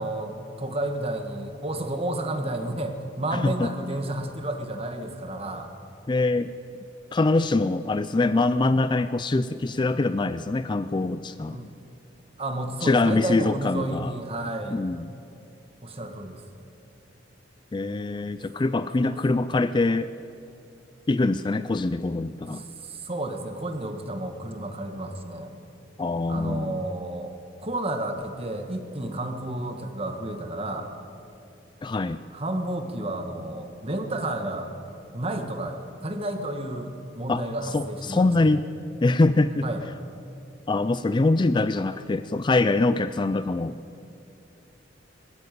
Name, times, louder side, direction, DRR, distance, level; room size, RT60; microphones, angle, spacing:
voice 1, 0.0-5.7 11.5-11.7 12.4-14.8 15.8-16.4 19.0-19.4 22.5-25.5 26.3-30.9 32.3-34.7 35.1-38.6 39.6-39.8, right 1 dB, 30° right, 5 dB, 1.6 m, -31 dB
voice 2, 3.3-3.7 6.1-6.5 7.1-11.6 12.8-14.1 14.7-15.1 17.7-20.1 21.1-22.6 26.0-26.8 31.8-32.2 37.3-37.4 37.7-38.6 39.0-39.7 40.7-43.8, left 2 dB, 25° left, 13 dB, 0.4 m, -24 dB
20.5 x 13.5 x 9.2 m, 2.7 s
head